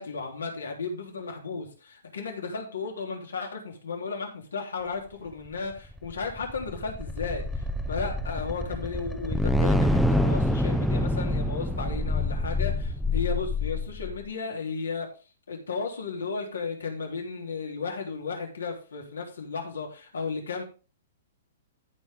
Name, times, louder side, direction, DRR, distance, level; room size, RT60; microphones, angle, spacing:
voice 1, 0.0-7.4 7.9-15.1 15.5-20.6, left 4 dB, 85° left, 1 dB, 3.5 m, -34 dB
sound 1, 5.8-14.2, left 1 dB, ahead, 0.8 m, -27 dB
15.0 x 5.5 x 3.8 m, 0.34 s
hypercardioid pair, 120°, 0 cm